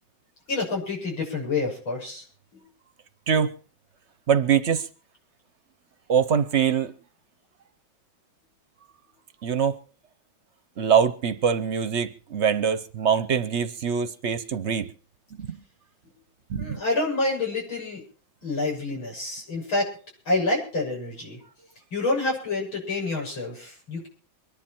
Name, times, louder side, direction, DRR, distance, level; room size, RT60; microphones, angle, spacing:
voice 1, 0.5-2.2 16.6-18.0 18.4-19.9 20.3-21.4 21.9-24.1, left 2 dB, 85° left, 7.7 m, -28 dB
voice 2, 4.3-4.9 6.1-6.9 9.4-9.8 10.8-14.9 15.4-15.6 16.5-16.8, right 7 dB, 55° right, 0.8 m, -23 dB
24.5 x 11.0 x 4.5 m
omnidirectional pair, 2.1 m